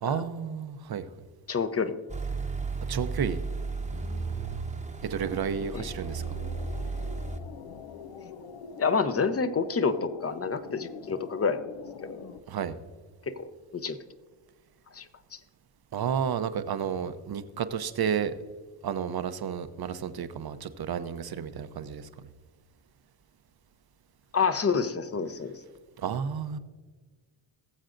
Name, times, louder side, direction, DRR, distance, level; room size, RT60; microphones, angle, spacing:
voice 1, 0.0-1.0 2.9-3.4 3.9-6.2 12.5-12.8 15.9-18.3 18.8-22.1 26.0-26.6, right 7 dB, 50° right, 0.8 m, -32 dB
voice 2, 1.5-1.9 5.7-5.9 8.8-11.6 12.0-12.3 13.3-14.0 14.9-15.1 24.3-25.5, left 5 dB, 30° left, 0.8 m, -28 dB
sound 1, 2.1-7.4, right 4 dB, 15° right, 0.9 m, -34 dB
sound 2, 5.2-12.4, left 6 dB, 85° left, 0.8 m, -44 dB
20.0 x 7.3 x 2.6 m
cardioid pair, 80°, 48 cm